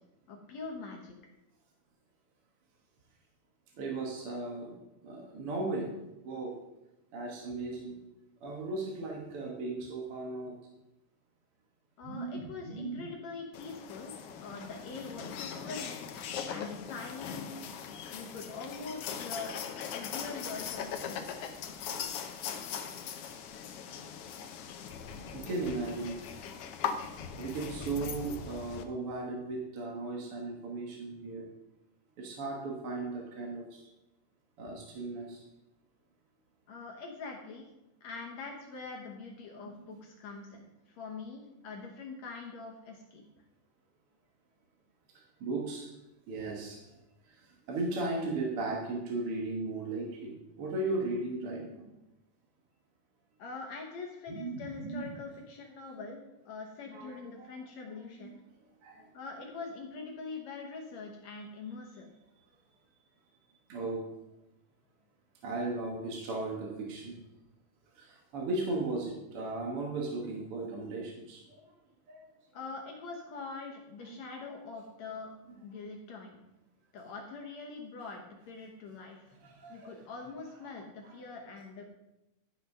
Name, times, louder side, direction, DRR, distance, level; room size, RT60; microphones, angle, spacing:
voice 1, 0.3-1.2 12.0-14.1 14.4-17.7 18.1-19.5 19.9-21.3 36.7-37.6 38.0-43.2 53.4-56.2 56.5-58.3 59.1-62.1 72.5-75.3 75.6-76.4 76.9-79.2 79.7-81.9, left 4 dB, 65° left, 0 dB, 2.2 m, -43 dB
voice 2, 3.8-4.8 5.0-5.9 6.2-6.5 7.1-8.0 8.4-10.5 12.0-13.0 25.3-26.2 27.4-31.4 32.2-33.9 34.6-35.4 39.6-39.8 45.2-45.9 46.3-46.8 47.3-51.9 54.3-55.1 56.9-57.5 58.2-58.3 58.8-59.1 63.7-64.0 65.4-67.2 68.0-71.6 72.1-72.2 74.1-74.4 79.4-80.1 80.6-80.8, right 2 dB, 55° right, -1 dB, 2.0 m, -36 dB
sound 1, 13.5-28.8, left 7 dB, 90° left, 1.2 m, -40 dB
12.0 x 5.9 x 5.5 m, 0.94 s
omnidirectional pair, 3.7 m